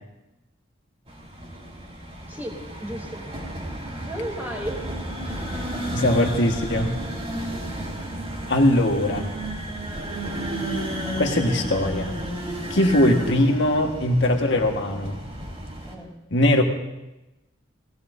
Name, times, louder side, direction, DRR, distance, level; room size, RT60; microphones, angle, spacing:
sound 1, 1.1-15.9, right 1 dB, 30° right, 3.1 m, -32 dB
voice 1, 2.3-3.3 4.0-4.8 5.2-5.9 12.7-12.9 15.8-16.1, equal, 10° right, -2 dB, 3.3 m, -35 dB
voice 2, 5.9-6.9 8.5-9.3 11.2-12.2 12.7-15.2 16.3-16.6, left 1 dB, 65° left, 3 dB, 1.6 m, -21 dB
20.0 x 16.0 x 2.7 m, 0.99 s
head